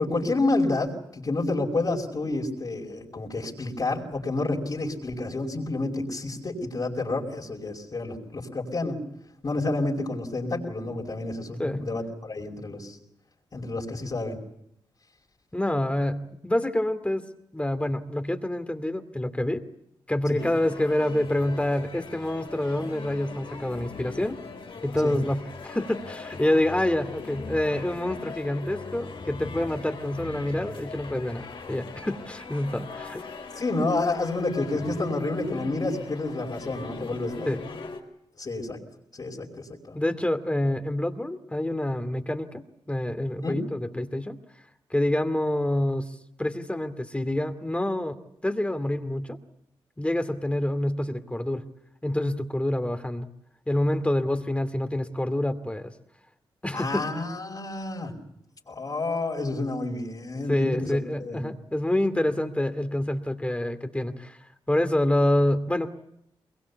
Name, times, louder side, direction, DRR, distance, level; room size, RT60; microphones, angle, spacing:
voice 1, 0.0-9.0 9.4-13.0 13.5-14.4 20.3-20.4 25.0-25.2 33.6-37.7 38.4-38.8 39.1-40.0 43.4-43.7 56.7-58.1 58.7-60.9 61.2-61.4, left 2 dB, 45° left, -3 dB, 5.3 m, -29 dB
voice 2, 15.5-17.3 17.5-19.6 20.1-24.4 24.8-33.2 37.5-37.6 39.9-42.6 42.9-44.4 44.9-48.2 48.4-49.4 50.0-51.6 52.0-53.3 53.7-55.9 56.6-57.0 60.5-64.4 64.7-65.9, left 1 dB, 15° left, 9 dB, 2.4 m, -27 dB
sound 1, 20.4-38.0, left 4 dB, 70° left, 4.4 m, -41 dB
22.5 x 22.0 x 8.3 m, 0.77 s
cardioid pair, 55°, 9 cm